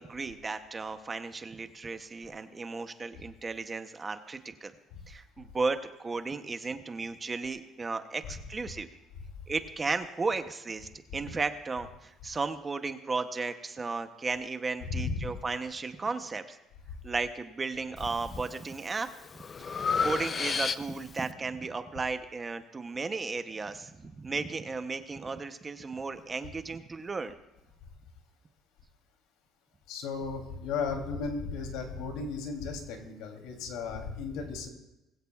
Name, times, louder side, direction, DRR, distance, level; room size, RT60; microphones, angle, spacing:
voice 1, 0.0-4.7 5.1-8.9 9.5-16.6 17.0-19.1 19.6-19.7 20.0-27.4, right 4 dB, 20° right, 9 dB, 0.7 m, -34 dB
voice 2, 14.8-15.3 29.9-34.7, left 4 dB, 85° left, 3 dB, 2.9 m, -35 dB
Breathing, 18.0-18.5 18.9-21.2, left 5 dB, 30° left, 0.5 m, -32 dB
21.0 x 15.5 x 2.4 m, 0.97 s
cardioid pair, 145°, 0 cm